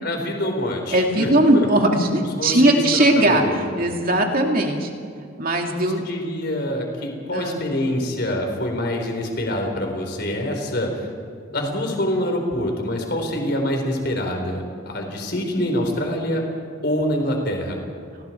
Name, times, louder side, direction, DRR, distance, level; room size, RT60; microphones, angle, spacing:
voice 1, 0.0-1.7 2.1-3.8 5.6-11.1 11.5-16.4 16.8-17.8, left 1 dB, 55° left, 3 dB, 4.3 m, -26 dB
voice 2, 0.9-4.9 5.4-6.0 7.3-7.6, right 1 dB, 45° right, 2 dB, 2.6 m, -19 dB
29.5 x 20.0 x 4.6 m, 2.3 s
head